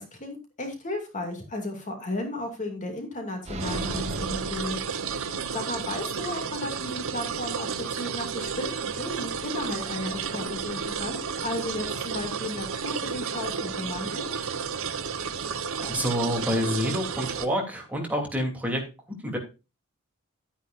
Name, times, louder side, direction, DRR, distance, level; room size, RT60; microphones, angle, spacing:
voice 1, 0.0-4.8 5.1-14.3, left 2 dB, 35° left, 3 dB, 2.4 m, -34 dB
sound 1, 3.4-5.6, right 1 dB, 30° right, 1.4 m, -36 dB
sound 2, 3.6-17.5, right 6 dB, 65° right, 1.0 m, -32 dB
voice 2, 15.8-18.8 19.2-19.4, equal, 5° right, 0 dB, 3.0 m, -28 dB
12.0 x 10.0 x 2.6 m, 0.28 s
head